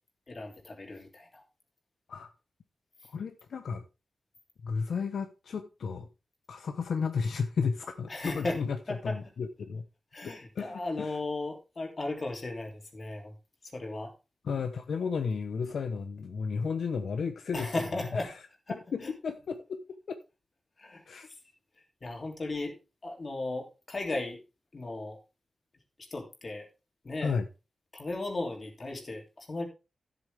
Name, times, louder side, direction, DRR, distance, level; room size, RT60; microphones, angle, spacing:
voice 1, 0.3-1.4 8.1-8.6 8.9-9.2 10.1-13.3 13.7-14.1 17.5-18.3 18.7-18.8 19.0-19.1 20.8-21.0 22.0-24.4 24.7-25.2 26.0-26.7 27.0-27.3 27.9-29.7, left 2 dB, 35° left, 3.0 m, -36 dB
voice 2, 3.1-3.8 4.6-6.1 6.5-9.8 10.2-11.2 14.4-18.3 18.9-19.8 21.1-21.3 27.2-27.4, left 5 dB, 75° left, 1.0 m, -33 dB
13.5 x 8.0 x 3.5 m
wide cardioid pair, 145°, 0 cm